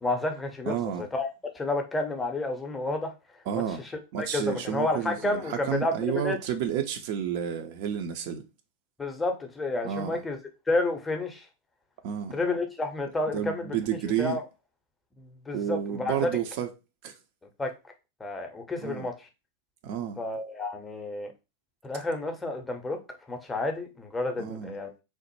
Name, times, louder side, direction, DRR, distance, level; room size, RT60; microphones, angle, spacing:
voice 1, 0.0-1.3 1.5-3.1 3.5-6.4 9.0-10.4 10.7-11.5 12.3-13.8 14.2-14.4 15.2-16.3 17.6-17.7 18.2-19.3 20.2-21.3 21.8-23.0 23.3-24.9, left 2 dB, 15° left, 0.6 m, -30 dB
voice 2, 0.7-1.0 3.5-3.8 4.1-8.4 9.8-10.2 12.0-12.3 13.3-14.4 15.5-16.7 17.0-17.1 18.8-19.1 19.8-20.2 24.4-24.7, right 9 dB, 45° right, 0.4 m, -31 dB
3.1 x 2.0 x 3.0 m
figure-of-eight pair, 90°, 0 cm